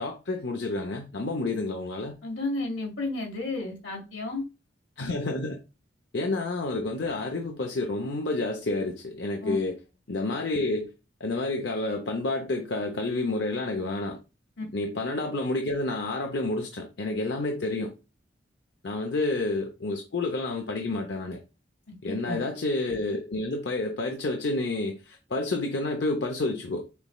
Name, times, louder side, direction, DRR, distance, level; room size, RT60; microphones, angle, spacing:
voice 1, 0.0-2.1 5.0-5.6 6.1-9.8 10.1-10.9 11.2-14.2 14.7-17.9 18.8-21.4 22.0-26.9, left 2 dB, 65° left, 0.7 m, -29 dB
voice 2, 2.2-4.4 9.4-9.6 14.6-14.7 22.0-22.4, left 2 dB, 80° left, 1.7 m, -32 dB
6.8 x 3.1 x 2.3 m
head